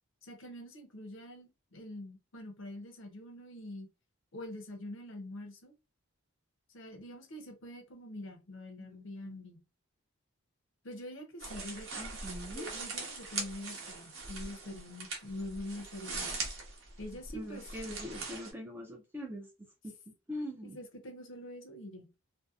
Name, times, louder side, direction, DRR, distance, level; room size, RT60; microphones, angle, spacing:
voice 1, 0.2-3.9 4.3-5.7 6.7-9.6 10.8-12.0 12.5-16.5 17.0-17.6 20.6-22.2, left 1 dB, 60° left, 0.6 m, -45 dB
voice 2, 8.8-9.4 12.0-12.7 17.1-20.8, equal, 10° right, 0.4 m, -43 dB
sound 1, 11.4-18.5, right 3 dB, 65° right, 0.8 m, -41 dB
2.6 x 2.0 x 2.3 m
head